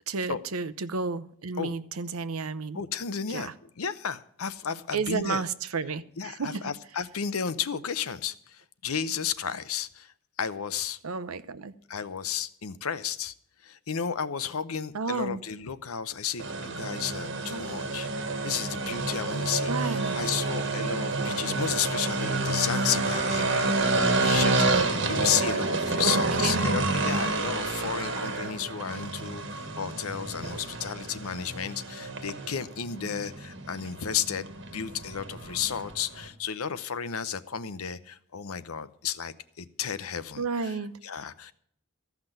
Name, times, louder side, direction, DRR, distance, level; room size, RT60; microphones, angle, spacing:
voice 1, 0.1-2.8 3.3-3.5 4.9-6.6 11.0-11.7 14.9-15.4 19.7-20.2 26.0-26.8 40.4-40.9, right 4 dB, 80° right, 14 dB, 0.8 m, -32 dB
voice 2, 2.7-3.5 3.8-5.4 6.2-11.0 11.9-13.3 13.6-18.1 18.4-34.5 34.7-40.7 41.0-41.5, left 8 dB, 80° left, 14 dB, 0.7 m, -33 dB
sound 1, 16.4-36.3, right 3 dB, 55° right, 1.4 m, -29 dB
14.5 x 5.9 x 9.0 m, 0.65 s
head